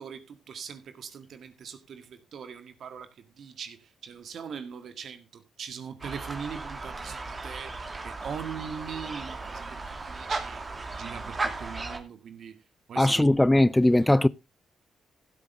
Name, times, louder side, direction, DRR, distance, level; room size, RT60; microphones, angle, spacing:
voice 1, 0.0-10.6 10.9-12.6 12.9-13.4 14.0-14.2, right 7 dB, 65° right, 1.9 m, -41 dB
sound 1, 6.0-12.0, right 3 dB, 35° right, 2.5 m, -36 dB
voice 2, 13.0-14.3, left 1 dB, 15° left, 0.5 m, -20 dB
15.5 x 8.4 x 3.4 m
hypercardioid pair, 45°, 0 cm